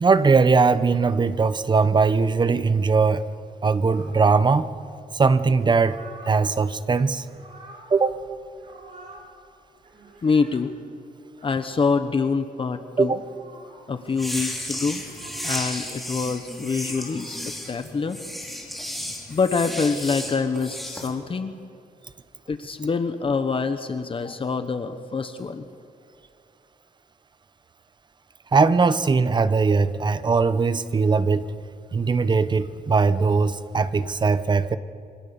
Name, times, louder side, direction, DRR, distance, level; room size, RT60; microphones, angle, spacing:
voice 1, 0.0-3.2 3.6-4.7 5.1-6.0 6.3-7.2 7.9-8.2 13.0-13.2 28.5-31.4 31.9-34.8, right 4 dB, 25° right, 0.9 m, -20 dB
sound 1, 3.9-4.5 5.5-6.5 7.1-8.2 8.5-9.3 9.8-10.6 11.3-11.5 13.1-13.9 14.9-15.7 16.3-17.4 18.3-18.7, right 2 dB, 50° right, 7.6 m, -47 dB
voice 2, 10.2-10.7 11.4-13.1 13.9-15.0 15.4-17.4 17.7-18.2 19.3-21.5 22.5-25.6, left 4 dB, 35° left, 1.2 m, -25 dB
sound 2, 14.1-21.1, left 1 dB, ahead, 4.3 m, -33 dB
28.0 x 25.0 x 7.1 m
wide cardioid pair, 145°, 16 cm